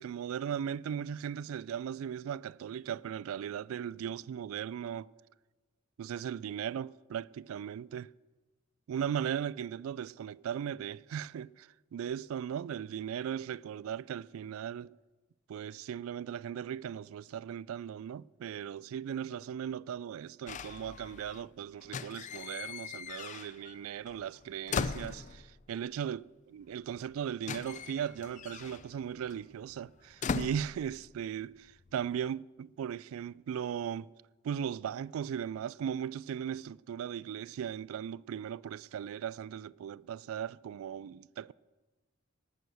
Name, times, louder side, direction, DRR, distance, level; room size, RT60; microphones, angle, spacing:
voice 1, 0.0-5.1 6.0-8.1 8.9-14.9 15.5-34.1 34.4-41.5, right 8 dB, 85° right, 0.3 m, -38 dB
sound 1, 20.5-21.5 21.8-23.8 24.1-25.7 26.7-26.8 26.9-31.4 31.7-32.2, left 5 dB, 35° left, 0.4 m, -39 dB
18.5 x 6.3 x 6.8 m
head